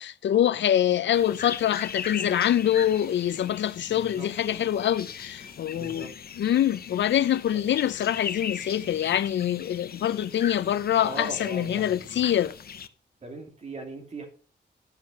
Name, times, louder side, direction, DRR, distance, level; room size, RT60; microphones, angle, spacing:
voice 1, 0.0-6.1 6.4-12.5, left 10 dB, 80° left, 0.5 m, -25 dB
sound 1, 1.1-12.9, left 7 dB, 55° left, 0.8 m, -39 dB
voice 2, 3.9-4.3 5.7-6.1 11.0-12.2 13.2-14.3, right 2 dB, 35° right, 2.8 m, -39 dB
11.5 x 6.5 x 5.1 m
wide cardioid pair, 145°, 18 cm